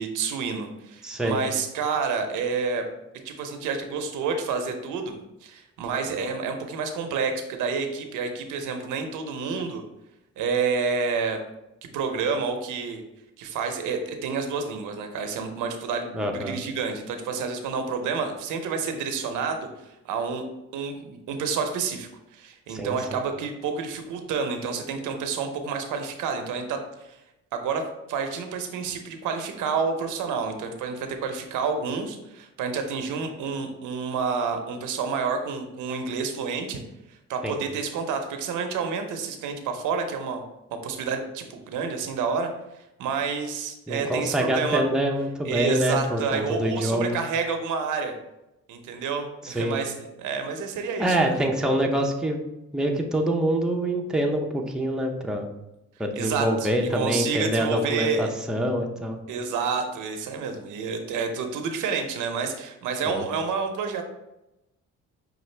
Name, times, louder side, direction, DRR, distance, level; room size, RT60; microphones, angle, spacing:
voice 1, 0.0-2.8 3.2-9.8 10.4-11.4 11.9-13.0 13.4-19.7 20.0-20.4 20.7-27.2 27.5-36.8 37.3-40.4 40.7-42.5 43.0-44.8 45.5-48.1 48.7-51.5 56.1-58.3 59.3-64.0, right 5 dB, 85° right, 6 dB, 0.7 m, -29 dB
voice 2, 1.0-1.4 16.1-16.6 22.7-23.2 37.4-37.6 43.9-47.2 49.4-49.8 51.0-52.4 52.7-55.5 56.0-59.2 63.0-63.3, right 1 dB, ahead, 1 dB, 0.5 m, -25 dB
5.7 x 2.4 x 3.2 m, 0.92 s
cardioid pair, 90°, 30 cm